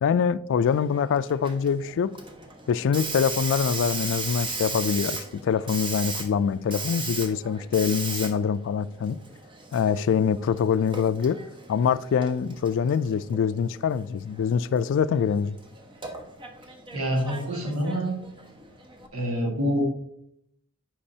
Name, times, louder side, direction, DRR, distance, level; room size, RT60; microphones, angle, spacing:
voice 1, 0.0-2.1 2.7-9.2 9.7-11.4 11.7-15.6, left 7 dB, 60° left, 0.3 m, -24 dB
Hiss, 0.7-19.1, right 3 dB, 25° right, 0.8 m, -37 dB
voice 2, 16.9-18.2 19.1-19.8, equal, 80° right, 1.7 m, -26 dB
8.6 x 5.2 x 2.7 m
head